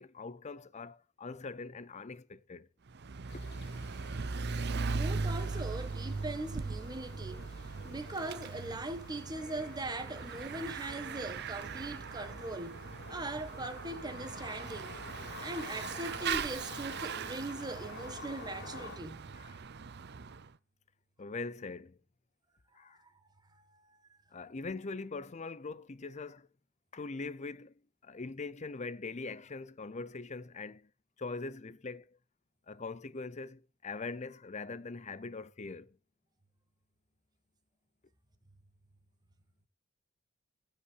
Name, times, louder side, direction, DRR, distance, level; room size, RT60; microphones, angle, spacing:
voice 1, 0.0-2.7 3.3-3.4 19.3-19.6 21.2-22.0 22.7-23.0 24.3-26.5 26.9-27.7 28.0-30.9 31.2-32.2 32.7-36.0, left 3 dB, 30° left, 0.6 m, -42 dB
Bicycle / Mechanisms, 2.9-20.5, right 4 dB, 50° right, 0.6 m, -39 dB
sound 1, 3.3-19.0, left 3 dB, 50° left, 2.7 m, -50 dB
sound 2, 4.3-10.3, left 2 dB, 80° left, 2.5 m, -60 dB
voice 2, 4.8-12.8 13.1-14.9 15.4-19.2 23.0-23.1 23.5-24.0, right 2 dB, 20° right, 1.5 m, -41 dB
15.0 x 5.6 x 8.1 m
head